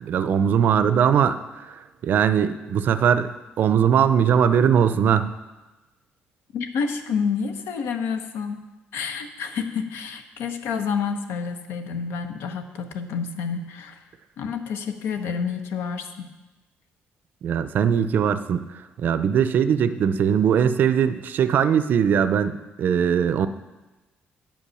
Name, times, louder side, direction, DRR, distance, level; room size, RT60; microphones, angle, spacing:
voice 1, 0.0-1.4 1.7-5.3 17.4-18.7 19.0-23.5, right 8 dB, 55° right, 12 dB, 0.4 m, -20 dB
voice 2, 6.5-8.6 8.9-14.0 14.4-16.3, left 6 dB, 85° left, 8 dB, 0.8 m, -29 dB
9.0 x 5.4 x 6.2 m, 1.1 s
cardioid pair, 150°, 4 cm